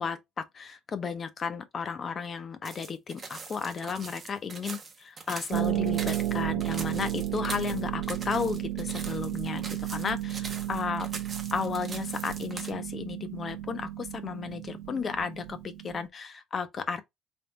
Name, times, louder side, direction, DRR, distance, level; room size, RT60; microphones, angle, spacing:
voice 1, 0.0-11.1 11.5-17.0, left 6 dB, 30° left, 0.5 m, -34 dB
sound 1, 2.6-12.7, right 4 dB, 25° right, 0.6 m, -42 dB
Harp, 5.5-16.1, right 13 dB, 85° right, 0.4 m, -33 dB
3.4 x 2.2 x 4.0 m
cardioid pair, 160°, 0 cm